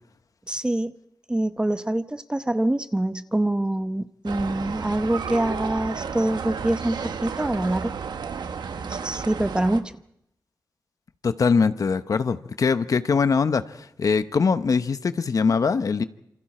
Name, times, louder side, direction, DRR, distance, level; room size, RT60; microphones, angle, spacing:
voice 1, 0.5-0.9 1.3-8.0 8.8-9.9, right 1 dB, 10° right, 11 dB, 0.8 m, -25 dB
sound 1, 4.2-9.8, right 6 dB, 90° right, 1.3 m, -32 dB
voice 2, 11.2-16.0, left 5 dB, 55° left, 11 dB, 0.9 m, -22 dB
27.5 x 27.0 x 4.4 m, 0.80 s
wide cardioid pair, 140°, 7 cm